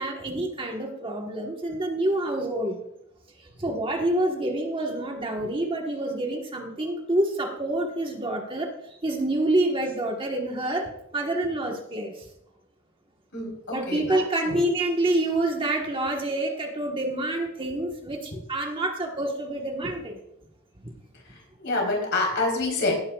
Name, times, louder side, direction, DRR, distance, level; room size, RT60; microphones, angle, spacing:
voice 1, 0.0-2.8 3.6-8.7 9.0-12.1 13.7-20.2, right 1 dB, 25° right, 2 dB, 1.3 m, -27 dB
voice 2, 13.3-14.2 14.5-14.6 21.6-23.0, left 2 dB, 60° left, 0 dB, 3.9 m, -26 dB
17.5 x 9.6 x 2.4 m, 0.78 s
head